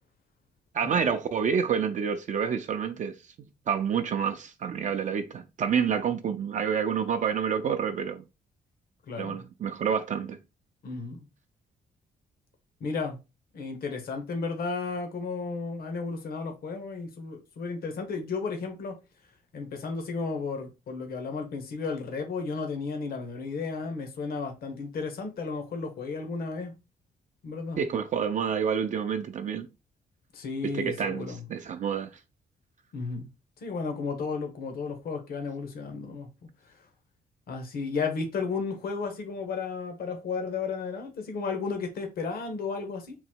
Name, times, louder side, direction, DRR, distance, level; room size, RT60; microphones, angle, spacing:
voice 1, 0.7-3.2 3.7-8.2 9.2-10.4 27.8-29.7 30.7-32.1, right 7 dB, 50° right, 0.5 m, -28 dB
voice 2, 9.1-9.4 10.8-11.2 12.8-13.2 13.5-19.0 19.5-26.7 27.4-27.8 30.3-31.4 32.9-33.3 33.6-36.3 37.5-43.1, left 4 dB, 65° left, 1.0 m, -33 dB
3.9 x 2.1 x 4.4 m
cardioid pair, 130°, 17 cm